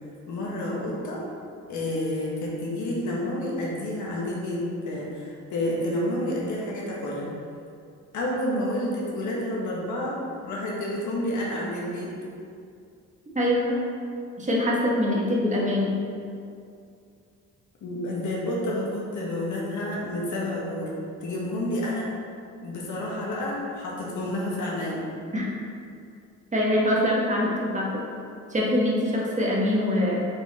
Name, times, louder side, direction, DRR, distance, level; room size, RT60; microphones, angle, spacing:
voice 1, 0.3-1.2 1.7-7.3 8.1-12.1 17.8-20.9 21.2-22.1 22.6-25.0, left 1 dB, 75° left, -4 dB, 1.4 m, -29 dB
voice 2, 13.3-13.8 14.4-15.9 25.3-25.5 26.5-27.9 28.5-30.2, left 1 dB, 25° right, -4 dB, 1.5 m, -24 dB
5.6 x 4.1 x 4.2 m, 2.4 s
cardioid pair, 90°, 30 cm